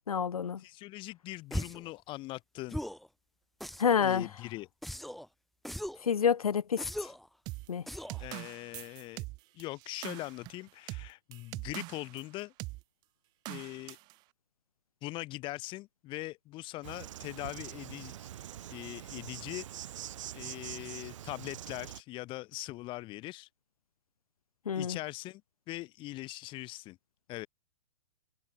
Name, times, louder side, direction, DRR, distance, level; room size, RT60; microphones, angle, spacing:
voice 1, 0.1-0.6 3.8-4.2 6.0-7.1 7.7-7.8 24.7-25.0, left 7 dB, 90° left, 0.5 m, -28 dB
voice 2, 0.6-2.8 4.0-4.7 8.2-9.2 9.5-12.5 13.5-14.0 15.0-18.1 18.7-19.7 20.3-23.5 24.7-25.4 25.7-27.0 27.3-27.5, left 19 dB, 25° left, 0.7 m, -41 dB
sound 1, 1.5-1.9 2.7-3.1 3.6-4.1 4.8-5.3 5.7-6.1 6.8-7.3 7.9-8.3, equal, ahead, 0.8 m, -39 dB
sound 2, 7.5-12.2 12.6-12.8 13.5-14.1, right 22 dB, 25° right, 0.3 m, -42 dB
Insect, 16.8-22.0, right 12 dB, 60° right, 1.4 m, -44 dB
hypercardioid pair, 120°, 18 cm